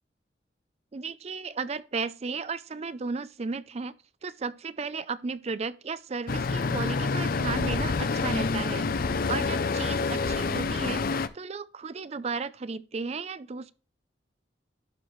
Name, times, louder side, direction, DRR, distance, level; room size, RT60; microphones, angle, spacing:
voice 1, 0.9-3.9 4.2-13.7, right 4 dB, 35° right, 0.4 m, -34 dB
Traffic noise roadway noise, 6.3-11.3, left 4 dB, 55° left, 0.5 m, -27 dB
12.0 x 4.5 x 3.1 m
head